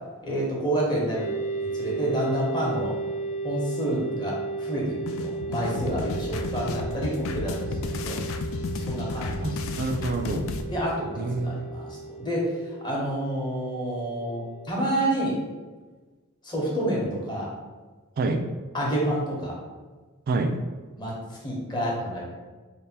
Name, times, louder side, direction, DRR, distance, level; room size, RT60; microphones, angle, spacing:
voice 1, 0.2-1.3 1.6-2.9 3.4-8.2 8.7-9.5 10.7-12.5 12.8-15.3 16.4-17.5 18.7-19.5 21.0-21.1 21.4-22.2, right 1 dB, 20° left, -4 dB, 0.9 m, -29 dB
sound 1, 1.1-15.0, right 3 dB, 85° left, 1.2 m, -35 dB
sound 2, 5.1-10.6, left 3 dB, 65° left, 0.3 m, -32 dB
voice 2, 9.4-10.5 11.2-11.6 18.2-18.5 20.3-20.6, right 3 dB, 45° right, 6 dB, 0.3 m, -27 dB
3.4 x 2.1 x 4.2 m, 1.3 s
head